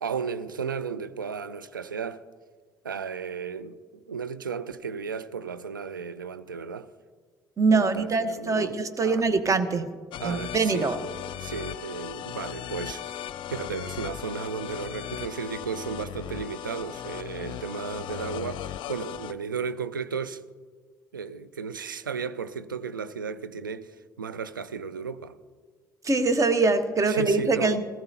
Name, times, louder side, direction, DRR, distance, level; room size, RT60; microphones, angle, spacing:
voice 1, 0.0-2.2 2.8-6.9 7.7-8.7 9.0-9.2 10.2-13.2 13.5-20.4 21.1-25.4 27.1-27.8, right 6 dB, 85° right, 0.4 m, -34 dB
voice 2, 7.6-9.9 10.2-11.0 26.0-27.8, right 3 dB, 30° right, 1.1 m, -23 dB
sound 1, 10.1-19.3, left 11 dB, 50° left, 0.6 m, -37 dB
18.5 x 14.5 x 2.9 m
figure-of-eight pair, 55°, 11 cm